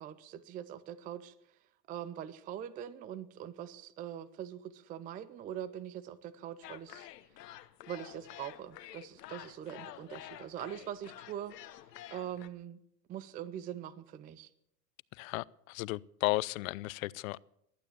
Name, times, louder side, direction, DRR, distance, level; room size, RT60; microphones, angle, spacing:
voice 1, 0.0-1.3 1.9-7.1 7.9-11.8 12.1-12.8 13.1-14.5, right 10 dB, 20° right, 0.5 m, -43 dB
sound 1, 6.6-12.5, left 13 dB, 75° left, 1.1 m, -50 dB
voice 2, 15.1-17.4, left 20 dB, 55° left, 0.6 m, -34 dB
15.5 x 12.0 x 7.1 m
hypercardioid pair, 115°, 49 cm